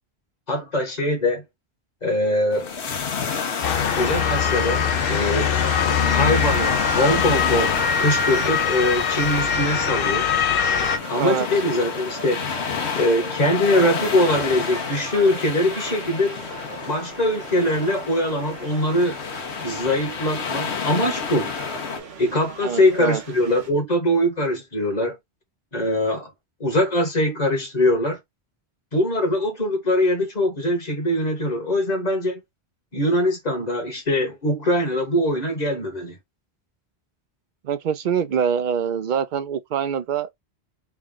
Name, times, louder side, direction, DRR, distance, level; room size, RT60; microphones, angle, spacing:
voice 1, 0.5-1.4 2.0-2.7 4.0-5.5 6.1-10.3 11.1-12.4 13.0-16.4 16.9-19.2 19.6-21.5 22.2-25.2 25.7-26.3 26.6-28.2 28.9-32.4 32.9-36.2, left 1 dB, 40° left, 1.3 m, -22 dB
sound 1, 2.5-22.0, left 6 dB, 80° left, 1.2 m, -31 dB
Motor vehicle (road) / Siren, 3.6-11.0, left 7 dB, 65° left, 0.8 m, -22 dB
sound 2, 3.8-23.7, right 5 dB, 75° right, 1.3 m, -39 dB
voice 2, 5.9-6.2 11.2-11.5 22.6-23.2 37.6-40.3, right 7 dB, 55° right, 0.6 m, -25 dB
3.5 x 2.3 x 3.6 m
omnidirectional pair, 1.1 m